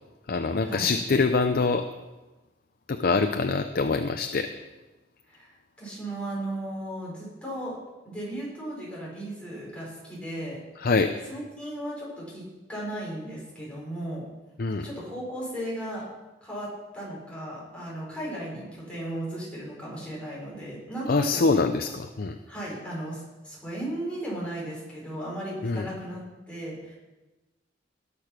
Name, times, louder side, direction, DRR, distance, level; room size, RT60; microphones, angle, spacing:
voice 1, 0.3-1.9 2.9-4.5 10.8-11.1 14.6-14.9 21.1-22.3 25.6-25.9, left 4 dB, 55° left, 7 dB, 0.6 m, -24 dB
voice 2, 5.3-7.8 8.0-10.9 11.3-14.2 14.8-16.1 16.4-21.5 22.5-26.9, right 1 dB, 5° left, -6 dB, 5.6 m, -36 dB
18.5 x 6.7 x 6.0 m, 1.1 s
head